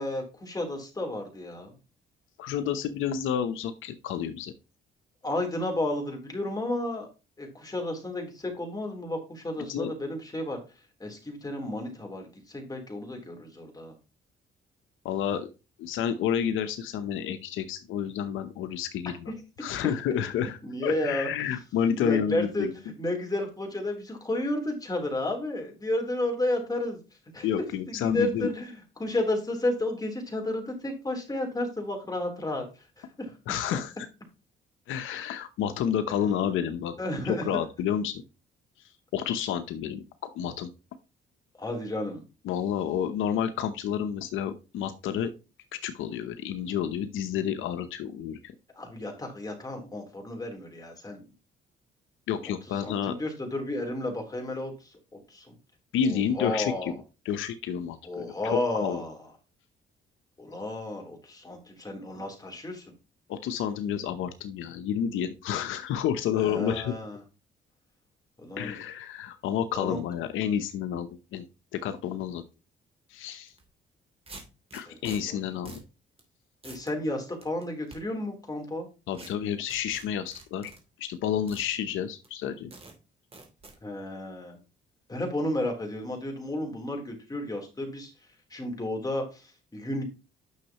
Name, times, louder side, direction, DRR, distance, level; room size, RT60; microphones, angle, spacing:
voice 1, 0.0-1.7 5.2-7.1 7.4-10.6 11.0-13.9 19.3-19.4 20.6-21.3 22.0-22.7 23.0-27.0 27.3-27.5 27.9-32.6 33.0-33.3 37.0-37.6 41.6-42.2 48.7-51.2 52.8-55.5 56.0-56.9 58.0-59.2 60.4-62.8 66.4-67.2 68.4-68.8 69.7-70.0 74.9-75.4 76.6-78.9 83.8-84.6 85.1-88.1 88.5-90.0, left 1 dB, 20° left, 1 dB, 3.6 m, -32 dB
voice 2, 2.4-4.5 9.7-9.9 15.0-15.5 15.8-19.3 19.6-22.7 27.4-28.5 33.5-34.1 34.9-36.9 37.2-38.2 39.1-40.7 42.4-45.3 45.8-48.5 52.3-53.2 55.9-56.9 57.2-59.0 63.3-66.9 68.6-71.5 71.7-72.4 73.1-73.5 74.7-75.8 79.1-80.7 81.0-82.7, left 9 dB, 85° left, 9 dB, 0.9 m, -30 dB
sound 1, 73.5-73.6 74.3-75.2 75.6-75.9 76.2-76.3 76.6-76.9 77.4-78.0 79.1-79.3 79.7-80.8 81.5-81.7 82.2-82.3 82.7-82.9 83.3-83.8, right 3 dB, 30° right, 2.9 m, -46 dB
9.6 x 6.4 x 3.0 m, 0.29 s
cardioid pair, 90°, 20 cm